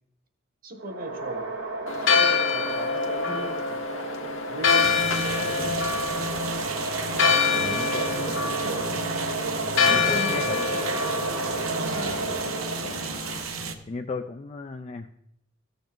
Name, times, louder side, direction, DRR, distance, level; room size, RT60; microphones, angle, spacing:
voice 1, 0.6-1.5 2.0-5.9 7.5-7.7 8.1-9.0 9.9-11.6, equal, 45° right, 7 dB, 1.2 m, -38 dB
sound 1, 0.8-13.2, right 3 dB, 70° right, 2.1 m, -33 dB
Church bell, 1.9-13.4, left 5 dB, 65° left, 1.2 m, -26 dB
sound 2, 4.6-13.7, right 4 dB, 90° right, 1.0 m, -33 dB
voice 2, 7.4-8.5 9.8-10.6 11.9-12.6 12.8-13.0 13.9-15.1, left 4 dB, 30° left, 6 dB, 0.4 m, -36 dB
14.0 x 7.1 x 3.8 m, 0.78 s
head